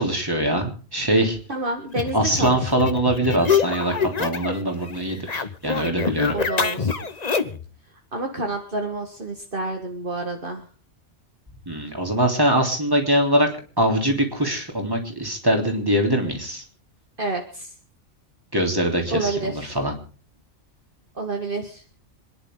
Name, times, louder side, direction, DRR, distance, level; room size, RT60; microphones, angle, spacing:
voice 1, 0.0-1.4 2.1-6.4 11.7-13.5 13.8-16.6 18.5-19.9, right 1 dB, 20° right, 2 dB, 3.5 m, -22 dB
voice 2, 1.5-2.6 6.3-7.1 8.1-10.7 17.2-17.7 19.1-19.8 21.2-21.8, right 2 dB, 50° right, 3 dB, 1.9 m, -29 dB
sound 1, 1.9-4.6 4.9-7.7, left 6 dB, 35° left, 1.1 m, -25 dB
26.5 x 10.5 x 3.9 m, 0.39 s
omnidirectional pair, 1.2 m